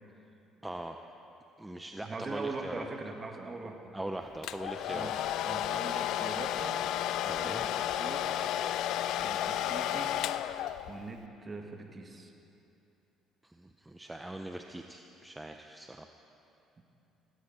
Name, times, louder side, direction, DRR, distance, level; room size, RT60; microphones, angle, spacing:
voice 1, 0.6-1.0 1.6-2.8 3.9-5.1 7.3-7.6 13.4-16.1, right 1 dB, 10° right, 4 dB, 0.7 m, -41 dB
voice 2, 2.0-3.9 4.9-6.8 7.2-8.4 9.2-10.2 10.9-12.3, right 3 dB, 30° right, 3 dB, 2.0 m, -42 dB
Domestic sounds home sounds, 4.4-11.1, left 11 dB, 70° left, 0.4 m, -32 dB
17.0 x 16.5 x 4.3 m, 2.8 s
supercardioid pair, 75°, 0 cm